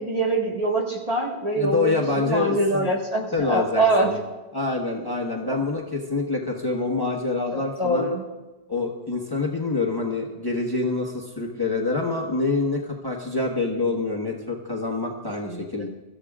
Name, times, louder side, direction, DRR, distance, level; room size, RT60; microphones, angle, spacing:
voice 1, 0.0-4.1 5.4-5.6 7.5-8.2 15.4-15.9, right 1 dB, 35° right, -2 dB, 1.8 m, -24 dB
voice 2, 1.6-2.9 3.3-4.1 4.5-8.1 8.7-15.9, left 3 dB, 20° left, -1 dB, 1.4 m, -26 dB
24.5 x 13.5 x 2.4 m, 1.1 s
omnidirectional pair, 1.1 m